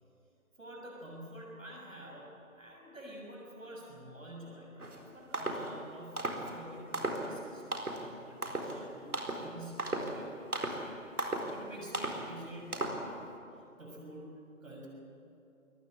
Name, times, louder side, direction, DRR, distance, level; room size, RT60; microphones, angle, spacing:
voice 1, 0.6-14.9, right 1 dB, 65° right, -1 dB, 6.8 m, -49 dB
sound 1, 4.8-5.0 5.3-5.7 6.2-6.5 6.9-7.3 7.7-8.0 8.4-8.8 9.1-9.5 9.8-10.2 10.5-10.8 11.2-11.5 11.9-12.2 12.7-13.0, right 2 dB, 85° right, 4.2 m, -35 dB
22.5 x 19.0 x 8.8 m, 2.7 s
figure-of-eight pair, 175°, 43 cm